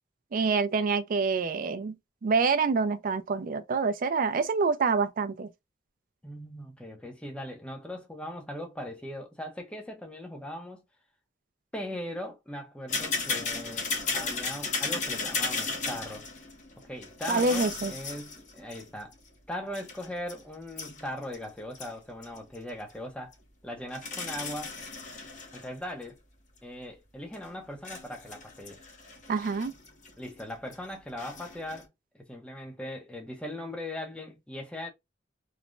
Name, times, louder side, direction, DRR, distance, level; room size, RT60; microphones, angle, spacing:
voice 1, 0.3-2.0 2.2-5.5 17.3-17.9 29.3-29.7, right 4 dB, 45° right, 0.4 m, -26 dB
voice 2, 6.2-10.8 11.7-16.2 16.8-19.1 19.5-23.3 23.6-24.8 25.5-26.2 26.6-28.8 30.2-31.9 32.1-34.9, left 1 dB, 5° left, 0.6 m, -39 dB
sound 1, 12.9-19.1 19.7-21.4 21.7-21.9 22.2-22.6 23.3-23.4 23.9-25.7 26.1-26.2 27.3-27.5 27.8-30.4 30.7-30.8 31.2-31.8, left 4 dB, 40° left, 0.8 m, -35 dB
3.1 x 2.1 x 2.3 m
head